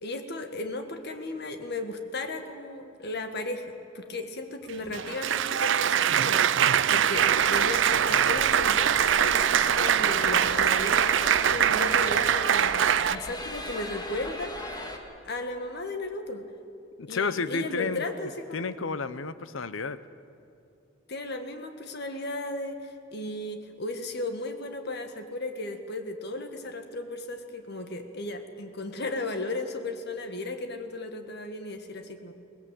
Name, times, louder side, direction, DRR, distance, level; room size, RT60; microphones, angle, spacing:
voice 1, 0.0-14.5 15.2-16.5 17.1-18.7 21.1-32.3, left 2 dB, 55° left, 7 dB, 1.8 m, -35 dB
Applause, 4.7-13.2, right 9 dB, 65° right, 0.5 m, -23 dB
sound 1, 7.1-15.0, left 1 dB, 20° left, 1.8 m, -39 dB
voice 2, 17.0-18.0 18.5-20.0, left 4 dB, 80° left, 14 dB, 0.8 m, -31 dB
23.0 x 19.0 x 7.7 m, 2.7 s
head